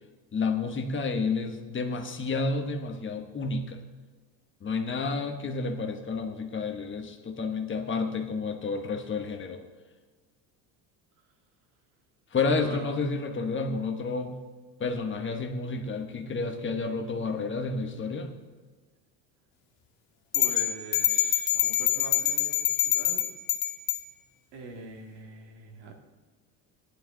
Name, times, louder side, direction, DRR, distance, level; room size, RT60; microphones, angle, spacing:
voice 1, 0.3-3.8 4.6-9.6 12.3-14.4 14.8-18.4, left 4 dB, 25° left, 5 dB, 1.1 m, -30 dB
voice 2, 12.5-12.9 20.3-23.2 24.5-25.9, right 3 dB, 75° right, 1 dB, 2.5 m, -43 dB
sound 1, 20.3-24.0, left 13 dB, 80° left, 2.1 m, -25 dB
15.0 x 11.5 x 3.8 m, 1.4 s
cardioid pair, 120°, 43 cm